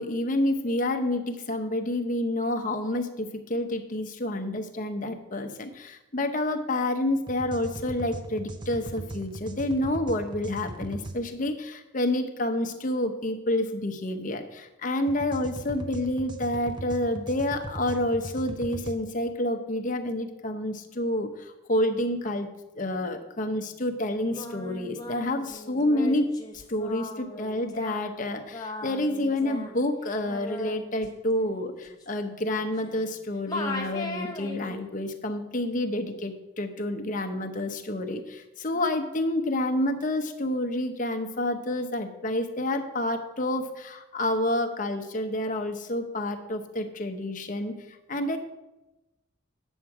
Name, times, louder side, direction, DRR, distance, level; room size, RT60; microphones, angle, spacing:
voice 1, 0.0-22.5 22.8-48.4, left 1 dB, 40° left, 6 dB, 0.8 m, -29 dB
sound 1, 7.3-11.2 15.1-19.0, right 2 dB, 25° right, 0.6 m, -39 dB
Singing, 24.1-33.2 33.5-34.9, left 2 dB, 20° left, 1.0 m, -39 dB
9.4 x 7.2 x 4.8 m, 0.99 s
head